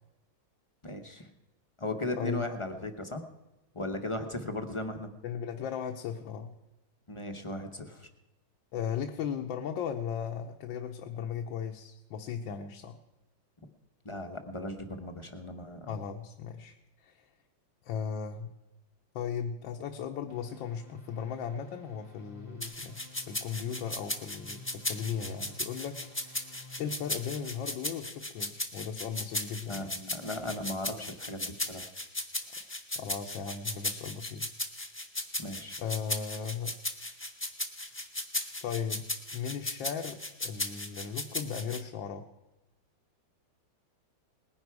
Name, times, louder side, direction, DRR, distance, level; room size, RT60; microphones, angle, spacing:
voice 1, 0.8-1.3 1.8-3.2 3.7-5.1 7.1-8.1 14.0-15.9 29.7-31.9 35.4-35.8, left 1 dB, 40° left, 5 dB, 0.4 m, -37 dB
voice 2, 2.1-2.5 5.2-6.5 8.7-13.0 15.9-17.3 17.8-18.5 19.1-23.0 23.3-29.9 32.6-34.5 35.8-36.7 38.6-39.0 39.3-42.3, left 7 dB, 85° left, 3 dB, 1.5 m, -37 dB
sound 1, 20.3-27.8, left 1 dB, 75° right, 3.8 m, -51 dB
sound 2, 22.6-41.8, left 1 dB, 10° left, 0.7 m, -36 dB
19.5 x 10.5 x 4.7 m, 1.0 s
omnidirectional pair, 2.1 m